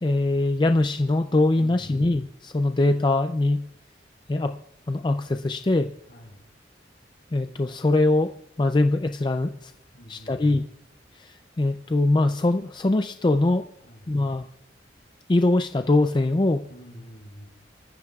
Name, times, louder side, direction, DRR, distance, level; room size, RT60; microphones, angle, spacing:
voice 1, 0.0-3.7 4.3-4.6 4.9-5.9 7.3-8.3 8.6-9.7 10.1-10.6 11.1-13.7 14.1-14.5 15.3-16.7, left 2 dB, 25° left, 7 dB, 0.4 m, -22 dB
voice 2, 1.5-2.1 6.1-6.5 9.9-10.5 13.8-14.2 16.7-17.5, equal, 60° left, 0 dB, 4.5 m, -46 dB
25.0 x 14.5 x 2.4 m, 0.86 s
head